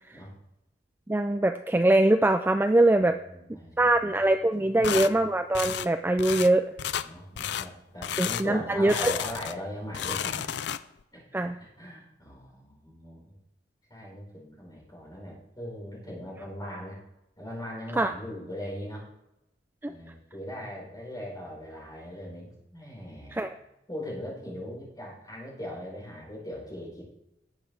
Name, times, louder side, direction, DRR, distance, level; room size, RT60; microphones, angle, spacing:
voice 1, 1.1-3.2 3.8-6.6 8.2-9.1 11.3-11.5 18.0-18.1 19.8-19.9 23.4-23.5, right 1 dB, 10° right, 8 dB, 0.4 m, -23 dB
voice 2, 3.0-4.3 4.6-5.2 7.0-10.5 11.1-13.4 13.9-17.0 17.4-19.0 19.8-23.6 23.9-27.0, equal, 20° left, -4 dB, 5.0 m, -40 dB
sound 1, 4.8-5.1 5.5-5.9 6.2-6.5 6.8-7.1 7.4-7.7 8.0-8.5 8.9-9.6 9.9-11.0, left 9 dB, 65° left, 0.5 m, -32 dB
19.0 x 7.6 x 3.4 m, 0.88 s
head